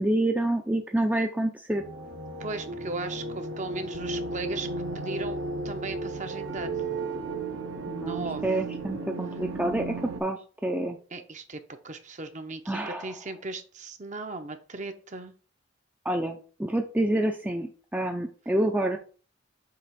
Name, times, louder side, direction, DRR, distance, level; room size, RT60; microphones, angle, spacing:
voice 1, 0.0-1.8 7.9-11.0 12.7-13.1 16.0-19.0, right 1 dB, 10° right, 3 dB, 0.5 m, -28 dB
sound 1, 1.7-10.2, right 3 dB, 75° right, 1.3 m, -34 dB
voice 2, 2.4-4.7 4.9-6.8 8.1-8.4 11.1-15.3, right 3 dB, 35° right, 7 dB, 0.8 m, -37 dB
7.6 x 3.0 x 5.9 m, 0.39 s
head